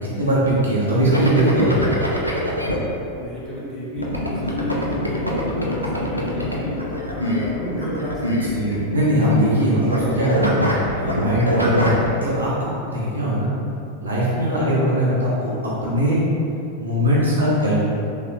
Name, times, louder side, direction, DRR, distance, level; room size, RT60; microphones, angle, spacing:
voice 1, 0.0-1.8 8.5-10.5 10.9-12.5 12.9-13.5 14.0-16.2 16.8-17.9, equal, 75° right, -7 dB, 0.8 m, -20 dB
sound 1, 1.1-2.8 4.0-9.6 9.9-12.1, left 1 dB, 90° left, 0.4 m, -24 dB
voice 2, 3.1-8.8, equal, 30° left, -8 dB, 1.1 m, -31 dB
3.7 x 3.2 x 2.3 m, 2.8 s
figure-of-eight pair, 90°, 0 cm